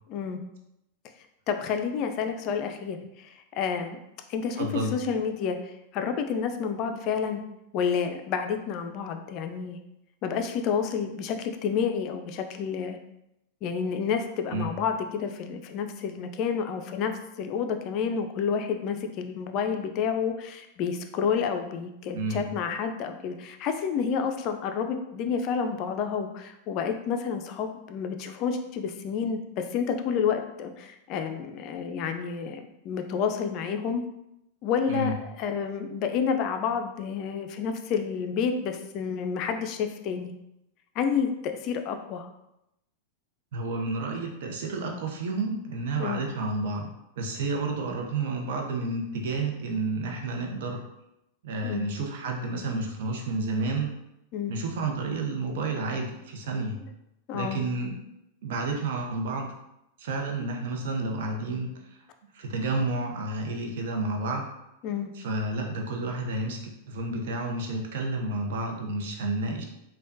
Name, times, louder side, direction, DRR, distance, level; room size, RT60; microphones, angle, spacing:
voice 1, 0.1-0.4 1.5-4.0 4.3-5.6 5.9-7.4 7.7-9.8 10.2-13.0 13.6-17.1 17.4-34.0 34.6-40.3 41.0-42.3 46.0-46.2 51.6-51.9 54.3-54.6 57.3-57.6 64.8-65.1, left 6 dB, 45° left, 6 dB, 0.3 m, -29 dB
voice 2, 4.6-4.9 14.5-14.7 22.1-22.5 34.9-35.1 43.5-46.9 47.2-50.8 51.4-53.9 54.5-56.8 57.3-58.0 58.4-59.5 60.0-61.7 62.3-64.4 65.2-66.6 66.9-69.6, right 2 dB, 65° right, 1 dB, 0.6 m, -30 dB
3.4 x 2.2 x 2.6 m, 0.85 s
hypercardioid pair, 100°, 0 cm